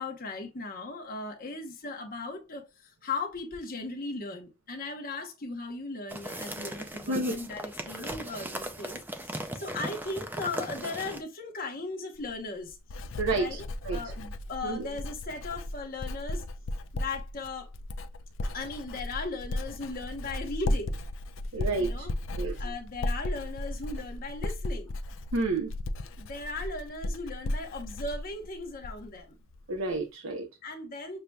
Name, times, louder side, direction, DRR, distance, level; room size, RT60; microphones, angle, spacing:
voice 1, 0.0-12.8 13.3-13.6 13.9-16.4 16.9-17.7 18.4-21.0 21.8-22.1 22.6-24.9 26.2-29.4 30.6-31.2, left 3 dB, 45° left, 0.9 m, -37 dB
sound 1, 6.1-11.2, right 1 dB, 10° right, 0.4 m, -38 dB
Writing, 12.2-29.2 29.5-30.0, left 1 dB, 65° left, 0.4 m, -35 dB
voice 2, 21.5-22.1 22.4-22.5 25.3-25.7 29.7-30.5, right 3 dB, 80° right, 0.7 m, -29 dB
6.5 x 2.7 x 2.2 m
head